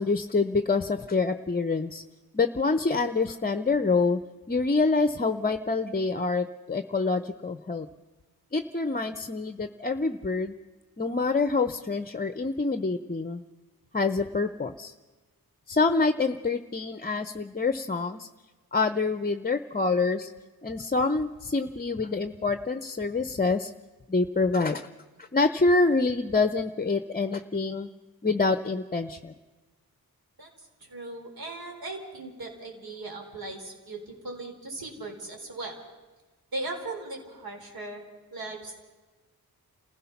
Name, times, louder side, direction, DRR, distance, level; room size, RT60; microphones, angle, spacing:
voice 1, 0.0-2.0 2.3-4.2 4.5-7.9 8.5-10.5 11.0-13.4 13.9-14.9 15.7-18.3 18.7-20.3 20.6-23.7 24.1-24.9 25.2-27.9 28.2-29.3, left 3 dB, 25° left, 10 dB, 0.7 m, -26 dB
voice 2, 30.4-35.8 36.5-38.0 38.3-38.8, right 2 dB, 70° right, 2 dB, 4.4 m, -38 dB
28.0 x 16.0 x 5.9 m, 1.2 s
wide cardioid pair, 95°, 37 cm